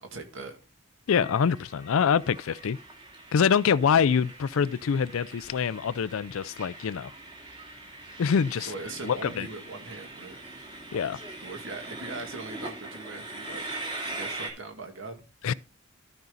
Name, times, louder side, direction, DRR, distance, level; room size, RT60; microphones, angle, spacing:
voice 1, 0.0-0.6 8.6-10.4 11.4-13.7 14.0-15.5, right 3 dB, 60° right, 2.1 m, -40 dB
voice 2, 1.1-2.8 3.3-7.1 8.2-8.7 9.0-9.5 10.9-11.2 15.4-15.5, left 7 dB, 65° left, 0.4 m, -25 dB
Train, 1.1-14.5, right 2 dB, 20° right, 2.2 m, -42 dB
13.0 x 5.4 x 3.9 m
head